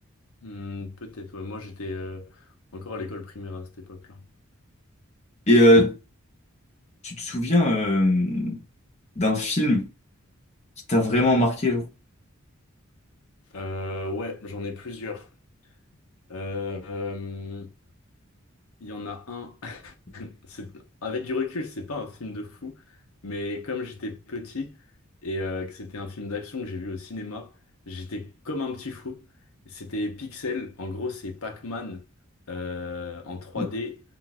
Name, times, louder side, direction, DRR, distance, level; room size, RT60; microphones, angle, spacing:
voice 1, 0.4-2.4 2.7-4.2 13.5-15.3 16.3-17.7 18.8-22.9 23.2-24.7 25.2-27.5 27.9-29.2 29.6-32.0 32.5-34.0, left 3 dB, 85° left, 0.9 m, -34 dB
voice 2, 5.5-6.0 7.0-8.6 9.2-9.9 10.9-11.9 33.6-33.7, left 1 dB, 30° left, 1.0 m, -20 dB
3.8 x 2.6 x 2.3 m
head